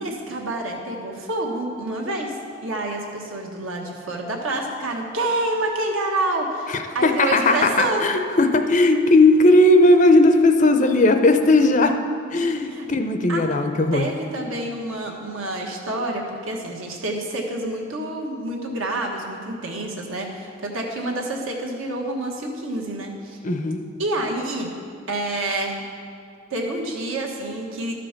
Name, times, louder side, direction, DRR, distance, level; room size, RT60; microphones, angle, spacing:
voice 1, 0.0-2.3 2.6-8.0 12.6-12.9 13.3-13.4 13.9-23.4 24.0-24.8 25.1-25.8 26.5-27.9, right 2 dB, 80° right, 0 dB, 1.4 m, -28 dB
voice 2, 6.7-11.9 12.3-14.0 23.4-23.8, left 2 dB, 35° left, 6 dB, 0.5 m, -17 dB
12.5 x 5.1 x 5.9 m, 2.4 s
head